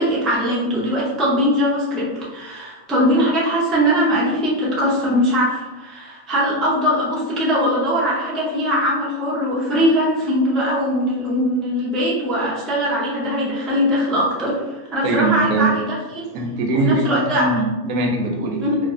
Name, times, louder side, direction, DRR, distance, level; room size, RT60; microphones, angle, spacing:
voice 1, 0.0-16.2 16.7-17.6 18.6-18.7, equal, ahead, -7 dB, 0.3 m, -21 dB
voice 2, 15.0-15.7 16.3-18.8, right 2 dB, 80° right, 1 dB, 1.0 m, -21 dB
3.2 x 2.4 x 2.5 m, 1.2 s
omnidirectional pair, 1.4 m